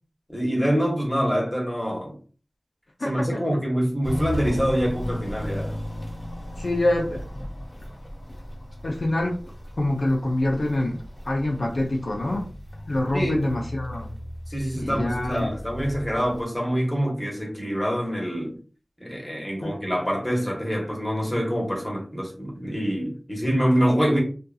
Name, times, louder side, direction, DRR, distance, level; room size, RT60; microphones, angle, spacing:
voice 1, 0.3-2.2 3.0-5.8 13.1-13.4 14.5-18.6 19.0-24.2, equal, 15° left, 1.0 m, -25 dB
voice 2, 3.0-3.4 6.6-7.2 8.8-9.4 9.8-12.5 12.9-14.1 14.8-15.5 19.6-19.8, left 1 dB, 70° left, 0.6 m, -25 dB
Walk footsteps, 4.0-16.4, equal, 45° left, 1.2 m, -35 dB
2.7 x 2.5 x 2.3 m
wide cardioid pair, 55°, 0 cm